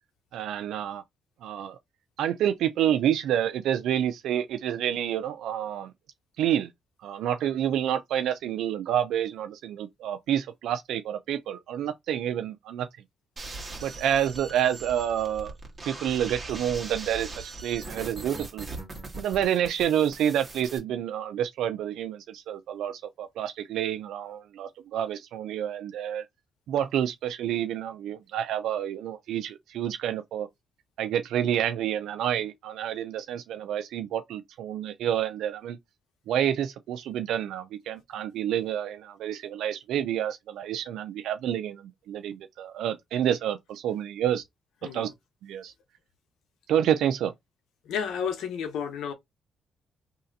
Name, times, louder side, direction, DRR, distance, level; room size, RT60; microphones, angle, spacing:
voice 1, 0.3-1.0 1.4-1.8 2.2-5.9 6.4-6.7 7.0-12.9 13.8-15.5 15.9-18.7 19.2-26.3 26.7-30.5 31.0-35.8 36.3-44.4 44.9-45.1 45.4-45.7 46.7-47.3, right 10 dB, 80° right, 0.4 m, -28 dB
sound 1, 13.4-20.8, right 3 dB, 25° right, 1.6 m, -40 dB
voice 2, 47.8-49.1, left 7 dB, 80° left, 0.8 m, -31 dB
3.2 x 2.8 x 3.8 m
cardioid pair, 90°, 0 cm